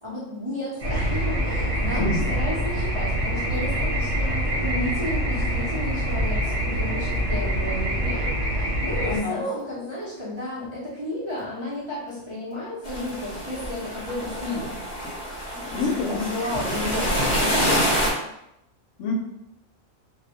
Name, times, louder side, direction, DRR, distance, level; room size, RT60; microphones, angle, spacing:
voice 1, 0.0-14.8 15.9-18.0, left 1 dB, 30° right, -9 dB, 0.6 m, -33 dB
sound 1, 0.8-9.2, right 1 dB, 65° right, 1.0 m, -25 dB
voice 2, 1.9-2.3 9.0-9.4 15.5-16.3 19.0-19.1, left 3 dB, 80° left, 0 dB, 0.9 m, -27 dB
sound 2, 12.8-18.1, equal, 40° left, 0.7 m, -26 dB
2.3 x 2.0 x 2.8 m, 0.83 s
omnidirectional pair, 1.2 m